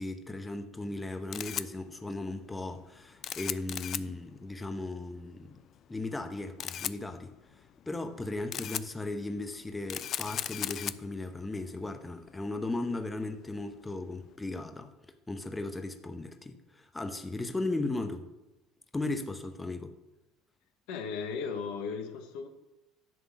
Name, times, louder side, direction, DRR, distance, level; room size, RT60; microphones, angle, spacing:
voice 1, 0.0-5.6 5.9-7.3 7.9-14.9 15.3-18.3 18.9-20.0, left 2 dB, 15° left, 7 dB, 0.9 m, -36 dB
Camera, 0.9-14.3, left 10 dB, 50° left, 0.4 m, -40 dB
voice 2, 20.9-22.5, left 5 dB, 65° left, 7 dB, 1.0 m, -36 dB
11.0 x 3.7 x 7.3 m, 0.98 s
hypercardioid pair, 75°, 0 cm